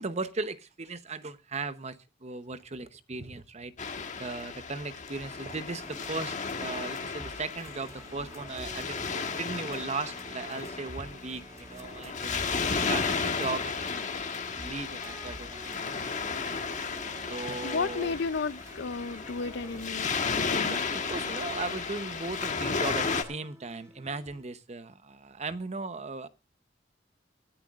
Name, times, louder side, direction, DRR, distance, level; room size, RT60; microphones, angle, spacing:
voice 1, 0.0-3.7 4.2-12.4 12.7-14.1 14.5-16.1 16.4-16.5 17.3-18.3 19.6-19.8 20.6-26.3, right 3 dB, 35° right, 0.9 m, -37 dB
Waves surf, 3.8-23.2, left 5 dB, 40° left, 1.4 m, -34 dB
sound 1, 5.8-24.4, right 1 dB, 15° right, 2.4 m, -48 dB
voice 2, 17.6-20.8, left 4 dB, 65° left, 0.5 m, -33 dB
24.0 x 10.0 x 2.4 m
head